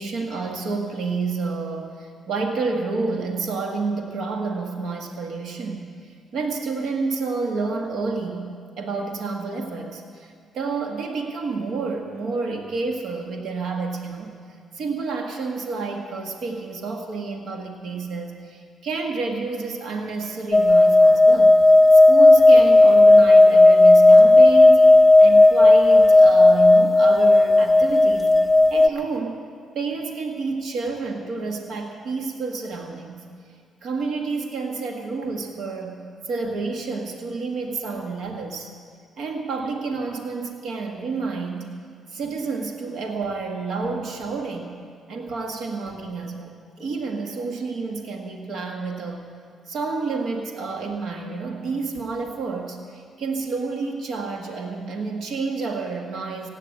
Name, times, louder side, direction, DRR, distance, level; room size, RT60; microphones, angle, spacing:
voice 1, 0.0-8.5 8.8-14.3 14.7-21.6 21.9-24.9 25.2-28.3 28.7-29.4 29.8-33.3 33.8-36.0 36.2-38.7 39.2-41.7 42.1-44.8 45.1-49.3 49.7-56.5, right 4 dB, 75° right, 2 dB, 1.7 m, -29 dB
sound 1, 20.5-28.9, left 2 dB, 10° left, 0.4 m, -12 dB
16.5 x 9.0 x 8.5 m, 2.2 s
cardioid pair, 90°, 0 cm